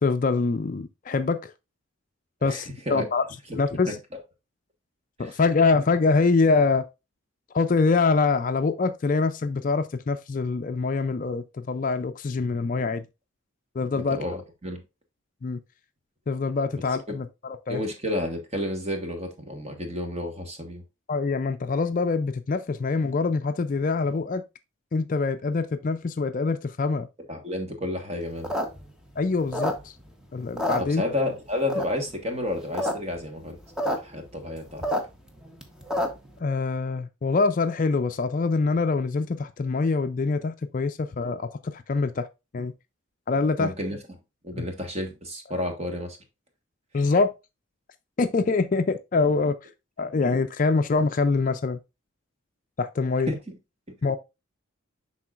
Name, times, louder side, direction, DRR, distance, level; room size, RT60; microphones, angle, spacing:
voice 1, 0.0-1.5 2.4-3.2 3.5-3.9 5.2-6.8 7.5-13.0 13.8-14.2 15.4-15.6 16.3-17.8 21.1-24.4 24.9-27.1 29.2-29.9 30.3-31.0 36.4-42.3 42.5-42.7 43.3-43.7 44.5-44.6 46.9-47.3 48.2-49.5 50.0-51.8 52.8-53.3 54.0-54.2, left 4 dB, 40° left, 0.4 m, -24 dB
voice 2, 2.4-3.1 3.5-3.6 3.9-4.0 5.2-5.4 13.9-14.8 16.7-17.2 17.7-20.8 27.3-28.5 30.8-33.6 33.8-34.8 43.6-44.0 44.4-46.2 53.3-53.5, left 1 dB, 30° right, 1.3 m, -31 dB
sound 1, 28.3-30.1 30.4-31.3 31.7-32.1 32.5-32.9 33.2-33.3 33.4-34.0 34.3-36.3, left 1 dB, 5° right, 0.8 m, -28 dB
10.5 x 3.7 x 2.4 m
head